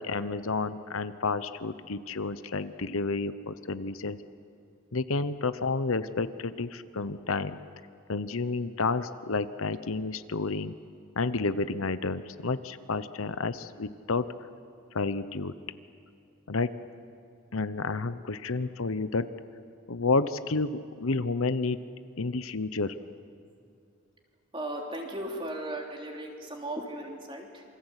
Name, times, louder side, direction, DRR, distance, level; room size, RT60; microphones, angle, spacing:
voice 1, 0.0-4.2 4.9-7.6 8.1-10.7 11.2-14.3 14.9-15.5 16.5-16.7 17.5-19.3 19.9-21.8 22.2-22.9, left 3 dB, 75° left, 12 dB, 0.9 m, -30 dB
voice 2, 24.5-27.6, right 1 dB, 25° right, 0 dB, 3.4 m, -36 dB
27.5 x 24.5 x 8.2 m, 2.5 s
head